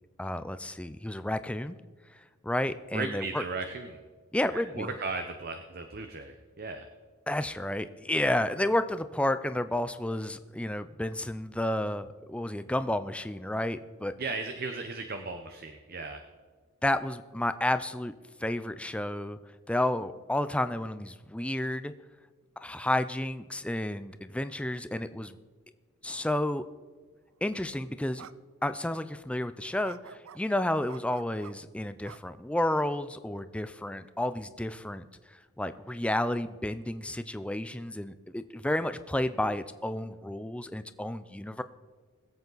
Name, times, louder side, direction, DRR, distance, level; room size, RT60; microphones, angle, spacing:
voice 1, 0.2-1.8 2.1-3.4 4.3-4.9 7.3-14.1 16.8-18.1 18.4-19.4 19.7-21.9 22.6-25.4 26.0-26.6 27.4-28.3 28.6-41.6, left 1 dB, 5° left, 12 dB, 0.4 m, -31 dB
voice 2, 2.9-4.0 4.5-6.9 14.2-16.2, right 3 dB, 45° right, 6 dB, 0.7 m, -36 dB
sound 1, 27.3-27.5 28.2-28.3 28.7-28.8 29.8-30.4 30.9-31.5 32.0-32.8, right 8 dB, 70° right, 0.4 m, -49 dB
21.0 x 8.1 x 4.0 m, 1.4 s
head